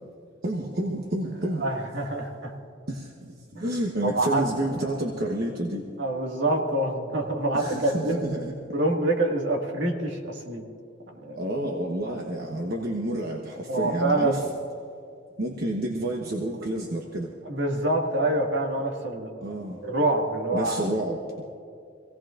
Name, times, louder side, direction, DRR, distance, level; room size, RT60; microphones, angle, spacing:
voice 1, 0.4-1.7 2.9-3.3 3.6-5.8 7.5-8.5 11.4-14.4 15.4-17.3 19.4-19.8 20.5-21.5, right 1 dB, 55° right, 0 dB, 1.1 m, -29 dB
voice 2, 1.6-2.5 3.5-3.7 4.0-4.4 6.0-8.2 8.7-10.6 11.2-11.4 12.1-12.2 13.7-14.4 17.5-19.3 19.8-20.8, right 2 dB, 70° right, 1 dB, 1.9 m, -26 dB
25.5 x 17.0 x 2.5 m, 2.4 s
head